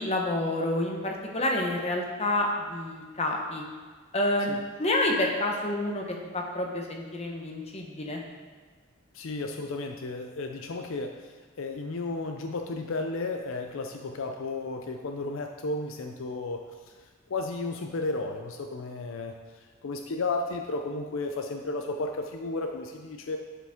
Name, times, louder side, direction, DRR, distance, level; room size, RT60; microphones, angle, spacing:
voice 1, 0.0-3.6 4.1-4.5 4.8-6.0 6.3-8.2, left 1 dB, 30° left, 1 dB, 0.9 m, -28 dB
voice 2, 9.1-16.6 17.3-19.3 19.8-23.4, left 3 dB, 65° left, 4 dB, 0.5 m, -33 dB
11.0 x 5.1 x 3.6 m, 1.5 s
head